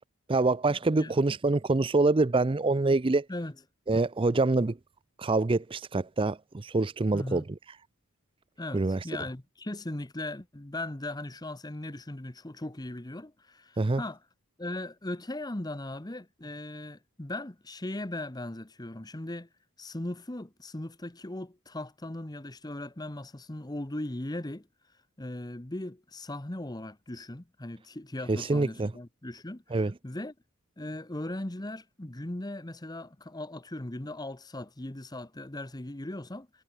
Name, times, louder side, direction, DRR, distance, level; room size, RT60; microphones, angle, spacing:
voice 1, 0.3-3.3 3.9-4.8 5.2-7.4 8.7-9.0 13.8-14.0 28.3-28.9 29.7-29.9, right 3 dB, 25° right, 0.5 m, -25 dB
voice 2, 7.1-7.5 8.6-14.2 14.6-19.5 19.8-24.7 25.2-30.3 30.8-36.6, left 1 dB, 15° left, 1.0 m, -38 dB
head